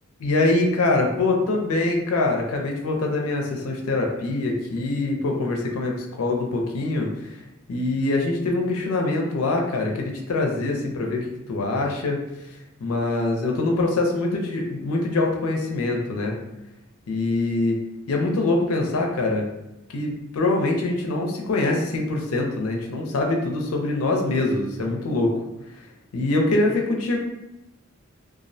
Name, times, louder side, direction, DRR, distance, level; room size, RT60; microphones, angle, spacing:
voice 1, 0.2-7.4 7.7-12.2 12.8-16.4 17.1-17.8 18.1-19.5 19.9-25.3 26.1-27.2, left 2 dB, 85° left, 1 dB, 0.5 m, -24 dB
2.3 x 2.0 x 2.6 m, 0.92 s
head